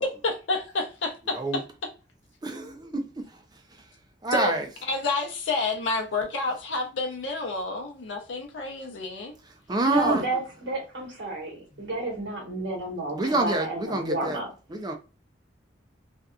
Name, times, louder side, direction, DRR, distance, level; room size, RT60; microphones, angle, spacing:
voice 1, 0.0-1.6 4.3-4.6 4.9-9.3, left 3 dB, 85° left, 0.7 m, -29 dB
voice 2, 2.4-3.3 4.2-4.6 9.7-10.2 13.1-14.4 14.7-14.9, right 2 dB, 20° right, 0.4 m, -27 dB
voice 3, 9.8-14.5, right 2 dB, 75° right, 1.1 m, -31 dB
2.6 x 2.3 x 2.3 m
head